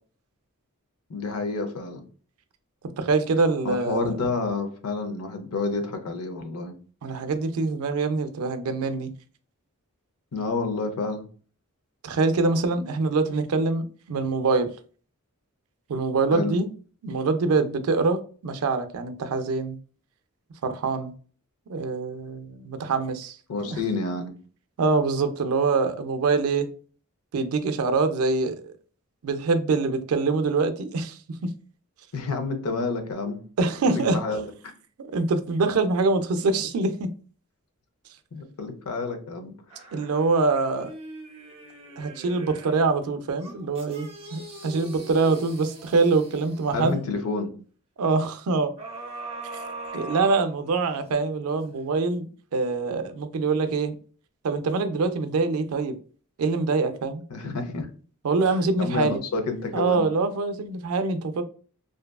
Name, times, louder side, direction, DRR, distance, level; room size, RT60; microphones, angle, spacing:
voice 1, 1.1-2.0 3.6-6.7 10.3-11.3 16.3-16.5 23.5-24.4 32.1-33.4 33.9-34.5 38.3-39.9 46.7-47.5 57.3-57.9 58.5-60.1, left 3 dB, 80° left, 0.6 m, -29 dB
voice 2, 3.0-4.2 7.0-9.1 12.0-13.8 14.1-14.7 15.9-16.7 17.0-19.8 20.6-21.1 21.7-23.8 24.8-26.7 27.3-28.7 29.2-31.5 33.6-34.2 35.0-37.1 39.9-40.9 42.0-47.0 48.0-48.7 49.9-53.9 54.4-56.0 56.4-57.2 58.2-59.2 59.7-61.4, right 3 dB, 75° right, 0.4 m, -24 dB
sound 1, 39.7-42.9 43.4-47.0 48.8-51.1 51.6-51.7, right 2 dB, 25° right, 0.6 m, -41 dB
2.6 x 2.3 x 2.2 m
head